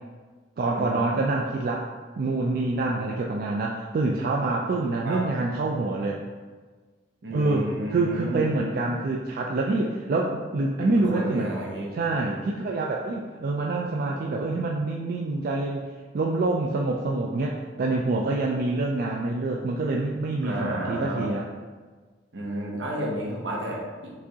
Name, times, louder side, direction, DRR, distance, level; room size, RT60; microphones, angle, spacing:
voice 1, 0.6-1.9 2.2-6.2 7.3-11.5 11.9-15.9 16.1-21.4, right 2 dB, 50° right, -1 dB, 0.3 m, -26 dB
voice 2, 7.2-8.5 10.8-11.9 20.4-21.3 22.3-24.1, right 1 dB, 80° right, -2 dB, 0.9 m, -32 dB
4.7 x 3.5 x 2.8 m, 1.4 s
head